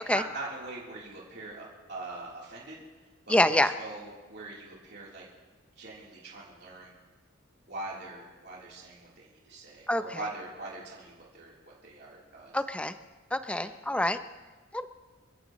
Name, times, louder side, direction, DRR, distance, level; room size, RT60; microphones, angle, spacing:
voice 1, 0.1-2.8 3.3-5.2 5.8-6.9 7.7-12.9 13.6-13.7, right 2 dB, 50° right, -5 dB, 3.6 m, -42 dB
voice 2, 3.3-3.7 9.9-10.0 12.5-12.9 13.3-14.2 14.7-14.9, left 1 dB, 5° left, 10 dB, 0.5 m, -25 dB
29.0 x 15.0 x 3.1 m, 1.3 s
head